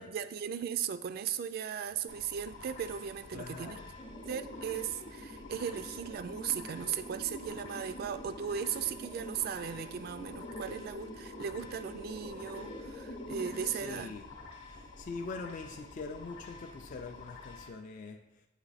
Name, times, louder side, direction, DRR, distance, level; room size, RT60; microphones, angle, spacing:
voice 1, 0.0-3.8 4.2-14.1, right 8 dB, 50° right, 12 dB, 0.3 m, -37 dB
sound 1, 2.1-17.7, left 4 dB, 70° left, 0.8 m, -50 dB
voice 2, 3.3-3.9 13.6-14.3 14.7-18.5, left 3 dB, 40° left, 4 dB, 0.3 m, -43 dB
sound 2, 4.0-14.0, equal, 25° left, 0.7 m, -46 dB
8.1 x 3.0 x 4.0 m, 0.97 s
head